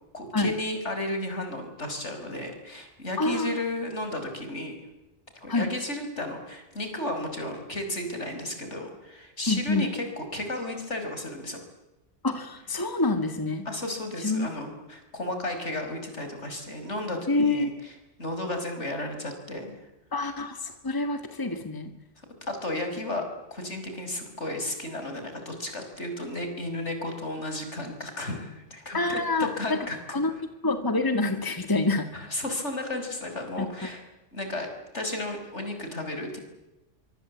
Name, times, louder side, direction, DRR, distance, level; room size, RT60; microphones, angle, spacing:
voice 1, 0.1-4.8 5.4-11.6 13.7-19.8 22.5-23.2 23.5-30.2 32.1-34.0 34.3-34.7 34.9-36.4, left 1 dB, 70° left, 5 dB, 5.8 m, -33 dB
voice 2, 3.2-3.6 5.5-5.7 9.5-9.9 12.2-13.7 14.2-14.5 17.3-17.7 20.1-21.9 28.9-29.8 30.1-30.3 30.6-32.1 33.6-33.9, left 2 dB, 15° left, 8 dB, 2.0 m, -27 dB
25.0 x 24.0 x 8.4 m, 0.98 s
omnidirectional pair, 1.2 m